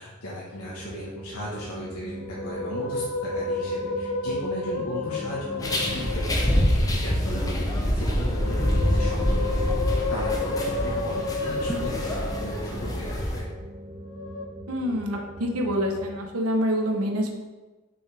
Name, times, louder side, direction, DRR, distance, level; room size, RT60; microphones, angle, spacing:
voice 1, 0.0-3.0 3.3-9.7 10.1-13.4, left 1 dB, 85° left, -6 dB, 1.3 m, -37 dB
sound 1, 0.6-16.2, right 1 dB, 25° right, 0.6 m, -41 dB
Musical instrument, 2.1-6.8 8.1-12.9 14.0-14.5, left 3 dB, 70° left, 0.6 m, -31 dB
sound 2, 5.6-13.4, equal, 15° left, 0.8 m, -26 dB
voice 2, 14.7-17.3, equal, 85° right, 3 dB, 1.0 m, -26 dB
6.0 x 5.6 x 3.4 m, 1.2 s
head